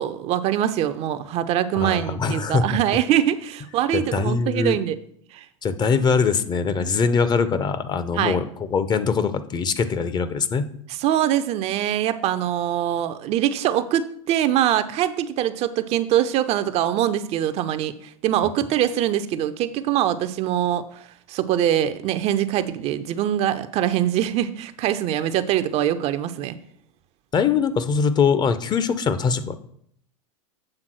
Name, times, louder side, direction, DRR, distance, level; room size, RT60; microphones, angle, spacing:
voice 1, 0.0-5.0 5.3-5.5 8.2-8.4 10.9-17.9 18.2-26.6, right 11 dB, 35° right, 11 dB, 0.5 m, -23 dB
voice 2, 1.7-2.6 3.9-4.8 5.6-8.4 8.7-10.7 27.3-29.5, left 5 dB, 25° left, 12 dB, 0.6 m, -22 dB
7.7 x 3.7 x 6.0 m, 0.65 s
hypercardioid pair, 95°, 18 cm